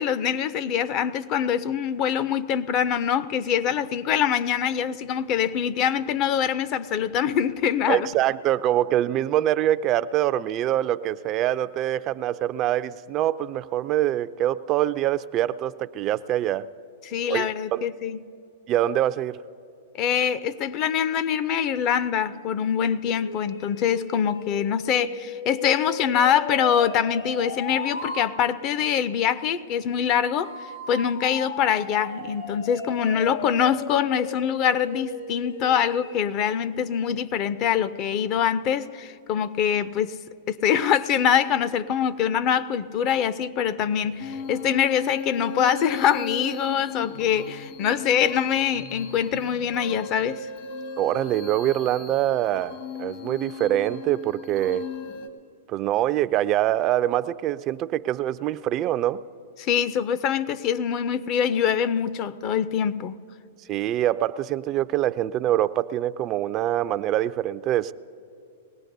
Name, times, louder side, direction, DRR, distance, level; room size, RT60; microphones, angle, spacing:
voice 1, 0.0-8.1 17.0-18.2 19.9-30.5 30.9-40.2 40.5-50.5 59.6-63.1, left 8 dB, 40° left, 0.5 m, -24 dB
voice 2, 7.9-16.7 17.3-17.8 18.7-19.4 51.0-54.9 55.7-59.2 63.7-67.9, right 13 dB, 35° right, 0.3 m, -24 dB
sound 1, 23.0-28.2 30.4-36.3, left 5 dB, 75° left, 2.2 m, -36 dB
sound 2, 44.2-55.3, left 5 dB, 55° left, 1.2 m, -37 dB
21.5 x 17.5 x 2.6 m
hypercardioid pair, 125°, 0 cm